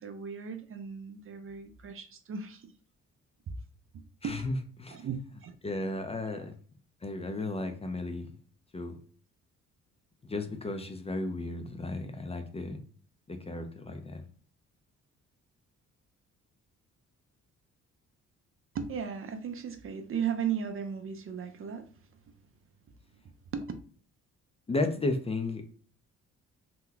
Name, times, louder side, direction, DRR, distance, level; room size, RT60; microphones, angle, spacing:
voice 1, 0.0-2.7 4.2-4.4 4.9-5.2 5.4-5.5 5.9-6.0 6.3-6.4 18.7-21.9 23.5-23.6, right 7 dB, 45° right, 0.5 m, -36 dB
voice 2, 4.2-5.0 5.6-6.5 7.0-8.3 8.7-9.0 10.3-12.8 13.3-14.2 24.7-25.7, left 2 dB, 20° left, 0.5 m, -34 dB
2.9 x 2.2 x 3.8 m
cardioid pair, 90°, 30 cm